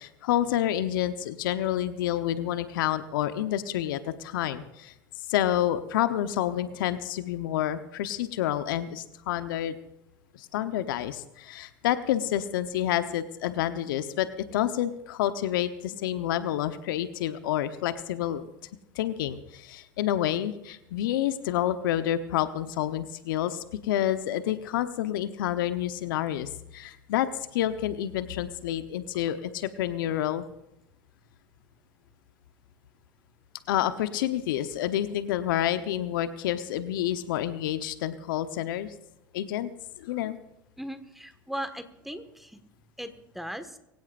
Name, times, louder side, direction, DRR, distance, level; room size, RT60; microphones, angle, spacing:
voice 1, 0.0-4.9 5.3-9.7 10.3-18.5 18.9-30.5 33.7-38.9 39.3-39.7 40.0-40.4, left 12 dB, 70° left, 10 dB, 1.0 m, -29 dB
voice 2, 40.8-42.6 43.0-43.8, equal, ahead, 9 dB, 1.7 m, -38 dB
23.5 x 16.5 x 2.6 m, 0.85 s
hypercardioid pair, 85°, 12 cm